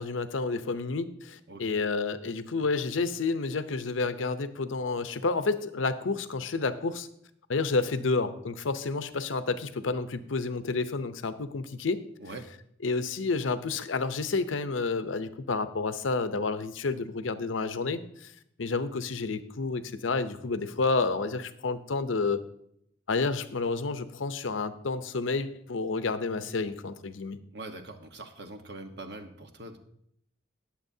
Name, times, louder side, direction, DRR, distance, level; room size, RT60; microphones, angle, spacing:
voice 1, 0.0-7.1 7.5-12.0 12.8-18.3 18.6-22.4 23.1-27.4, left 4 dB, 85° left, 11 dB, 0.7 m, -30 dB
voice 2, 27.5-29.8, right 2 dB, 60° right, 5 dB, 1.2 m, -42 dB
19.5 x 7.3 x 2.7 m, 0.72 s
head